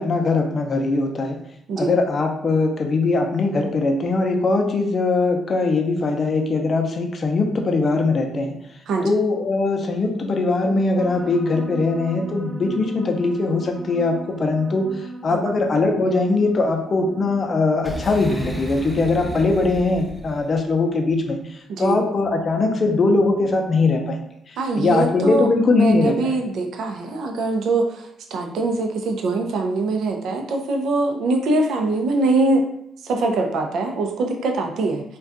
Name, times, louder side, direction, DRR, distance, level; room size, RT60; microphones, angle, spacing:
voice 1, 0.0-1.4 1.8-8.6 9.0-26.3, left 3 dB, 45° left, 3 dB, 0.5 m, -21 dB
sound 1, 11.0-19.6, right 3 dB, 30° right, 0.8 m, -40 dB
Boom, 17.8-20.6, equal, 5° right, 0.8 m, -33 dB
voice 2, 21.7-22.0 24.6-32.6 33.0-35.0, right 2 dB, 75° right, 3 dB, 0.5 m, -23 dB
2.5 x 2.3 x 3.6 m, 0.75 s
cardioid pair, 90°, 0 cm